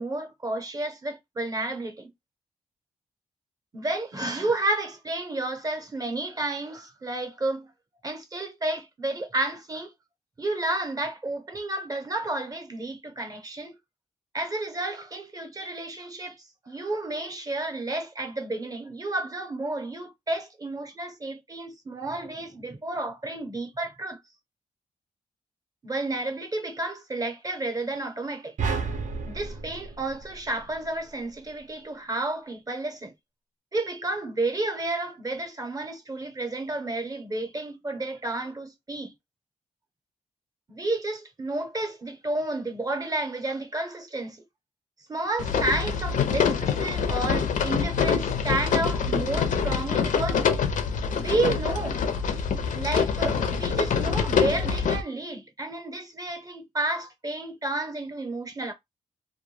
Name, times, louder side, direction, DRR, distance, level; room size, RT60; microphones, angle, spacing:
voice 1, 0.0-2.1 3.7-7.7 8.0-9.9 10.4-13.8 14.3-24.2 25.8-28.6 29.3-33.1 33.7-39.1 40.7-44.4 45.1-50.4 51.1-52.1 52.7-58.7, right 2 dB, 25° right, 0.6 m, -31 dB
sound 1, 28.6-31.0, right 4 dB, 65° right, 0.5 m, -32 dB
sound 2, 45.4-55.0, left 6 dB, 70° left, 0.4 m, -25 dB
2.1 x 2.1 x 3.1 m
cardioid pair, 95°, 14 cm